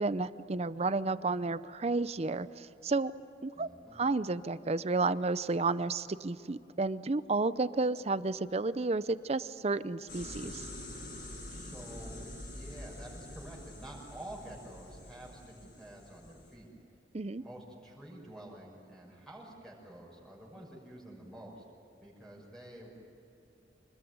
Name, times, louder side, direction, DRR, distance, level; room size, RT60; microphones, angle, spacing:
voice 1, 0.0-3.1 3.4-10.6 17.1-17.4, right 3 dB, 35° right, 15 dB, 0.6 m, -32 dB
voice 2, 3.5-4.1 11.5-16.7 17.4-21.6 22.0-22.9, right 1 dB, 5° left, -3 dB, 6.4 m, -49 dB
sound 1, 10.1-16.5, left 1 dB, 55° left, 7.4 m, -46 dB
26.0 x 21.0 x 9.4 m, 2.9 s
head